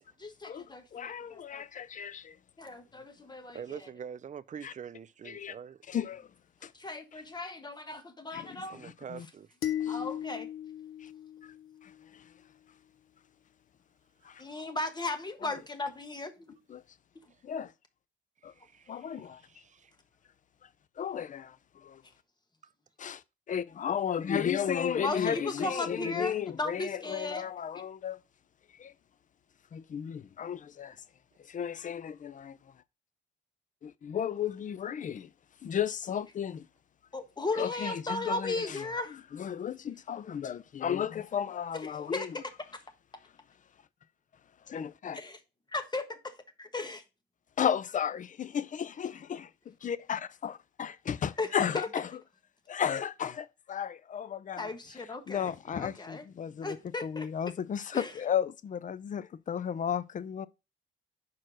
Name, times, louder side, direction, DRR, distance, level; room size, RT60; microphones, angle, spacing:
voice 1, 0.0-1.6 2.6-3.8 6.7-8.8 9.9-10.5 14.4-16.6 25.0-27.5 37.1-39.1 41.7-42.3 45.1-45.4 45.7-47.0 51.4-51.9 54.6-56.3 56.6-57.3 57.9-58.1, left 2 dB, 20° left, 1.4 m, -36 dB
voice 2, 0.9-2.4 4.6-4.7 5.3-5.5 5.9-6.3 6.6-6.7 8.3-8.5 8.8-9.3 9.8-10.0 14.2-14.4 15.4-15.5 16.7-16.8 17.4-17.7 18.4-18.5 18.9-19.4 21.0-21.6 21.8-22.0 23.0-23.2 23.5-28.2 28.8-28.9 29.7-31.0 31.5-32.6 33.8-35.3 35.6-36.6 37.6-38.8 39.3-42.3 44.7-45.2 47.6-52.1 52.7-54.7 55.3-56.8 57.0-60.5, left 8 dB, 40° left, 0.5 m, -34 dB
voice 3, 3.5-5.8 8.7-9.6 14.2-14.5 17.3-17.4 18.4-19.9 22.6-22.7, right 7 dB, 40° right, 0.6 m, -45 dB
sound 1, 9.6-12.0, left 11 dB, 85° left, 0.9 m, -36 dB
5.6 x 4.4 x 6.2 m
cardioid pair, 90°, 20 cm